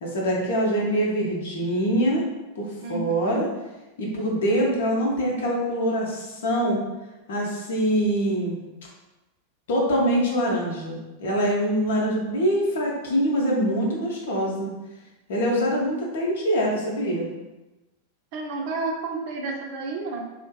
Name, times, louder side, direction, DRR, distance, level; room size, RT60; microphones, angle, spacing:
voice 1, 0.0-2.2 2.5-3.5 4.0-6.8 7.3-8.6 9.7-14.7 15.3-17.3, equal, 60° left, -2 dB, 0.6 m, -24 dB
voice 2, 2.8-3.5 11.9-12.1 18.3-20.2, right 3 dB, 45° right, 1 dB, 0.4 m, -31 dB
2.5 x 2.4 x 2.2 m, 1.1 s
figure-of-eight pair, 90°, 0 cm